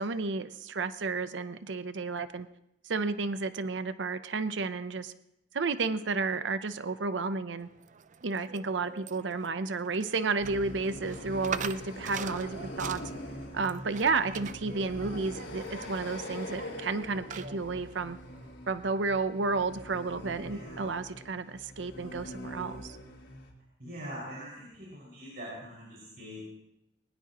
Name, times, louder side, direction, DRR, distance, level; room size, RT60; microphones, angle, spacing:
voice 1, 0.0-2.5 2.9-5.1 5.5-7.7 8.2-12.5 12.8-13.0 13.5-18.2 18.7-23.0, right 4 dB, 75° right, 12 dB, 0.7 m, -32 dB
sound 1, 7.6-18.5, right 7 dB, 40° right, 0.5 m, -45 dB
sound 2, 10.4-23.5, left 1 dB, 90° left, 4.0 m, -43 dB
voice 2, 12.0-12.3 20.5-20.9 23.8-26.4, equal, 60° right, -6 dB, 6.0 m, -43 dB
22.0 x 19.5 x 3.0 m, 0.84 s
head